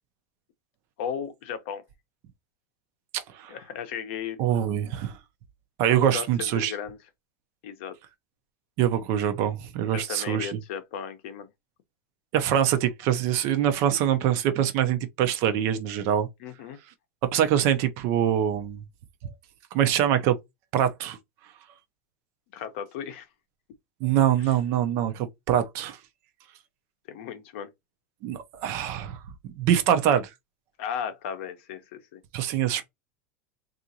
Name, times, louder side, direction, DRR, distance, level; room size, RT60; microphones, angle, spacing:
voice 1, 1.0-1.8 3.5-4.4 6.0-7.0 7.6-7.9 9.9-11.5 16.4-16.8 22.5-23.3 24.4-24.5 27.1-27.7 30.8-32.2, left 8 dB, 55° left, 0.7 m, -35 dB
voice 2, 3.1-3.5 4.4-5.2 5.8-6.7 8.8-10.6 12.3-16.3 17.3-18.8 19.7-20.4 20.7-21.2 24.0-26.0 28.2-29.2 29.4-30.3 32.3-32.8, right 10 dB, 40° right, 0.5 m, -24 dB
3.7 x 2.4 x 2.7 m
supercardioid pair, 180°, 8 cm